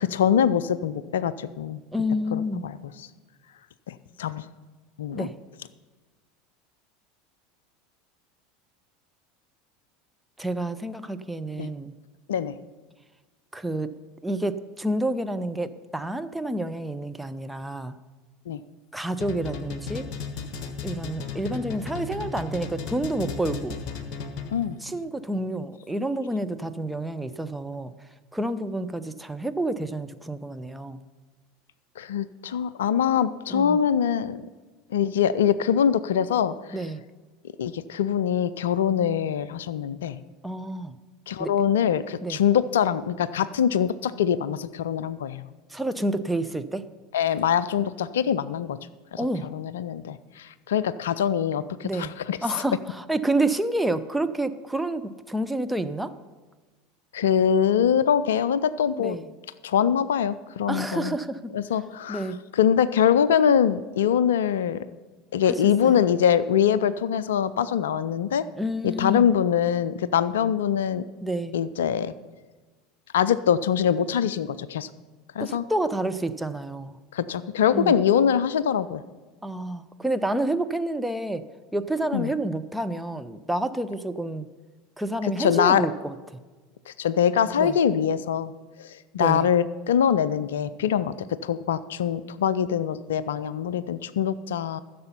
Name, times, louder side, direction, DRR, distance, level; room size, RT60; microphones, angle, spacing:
voice 1, 0.0-1.8 2.3-2.9 3.9-4.4 5.0-5.3 11.6-11.7 12.3-12.6 18.5-18.6 24.5-24.8 32.0-34.5 34.9-36.5 37.6-40.2 41.3-45.5 47.1-48.8 49.1-49.2 49.5-52.4 57.1-59.2 59.6-61.1 61.5-64.8 65.3-68.4 68.8-71.0 71.5-72.1 73.1-74.9 75.4-75.6 77.1-79.0 82.1-82.3 85.2-85.8 86.9-88.5 88.8-94.8, left 8 dB, 65° left, 16 dB, 0.4 m, -23 dB
voice 2, 1.9-2.7 5.1-5.3 10.4-11.9 13.5-13.9 14.2-18.0 18.9-20.1 20.8-23.8 24.8-27.9 28.3-31.0 33.5-33.8 36.7-37.0 40.4-41.0 41.4-41.5 42.2-42.4 45.7-46.9 49.2-49.5 51.8-52.1 52.4-56.1 59.0-59.3 60.7-61.5 62.1-62.4 65.5-66.0 68.6-69.3 71.2-71.6 75.4-77.0 77.7-78.0 79.4-81.4 81.7-84.5 85.0-86.1 87.6-87.7 89.2-89.5, right 1 dB, 5° right, 9 dB, 0.6 m, -29 dB
sound 1, 19.2-24.7, left 5 dB, 40° left, 1.4 m, -34 dB
14.5 x 6.8 x 5.5 m, 1.3 s
figure-of-eight pair, 75°, 0 cm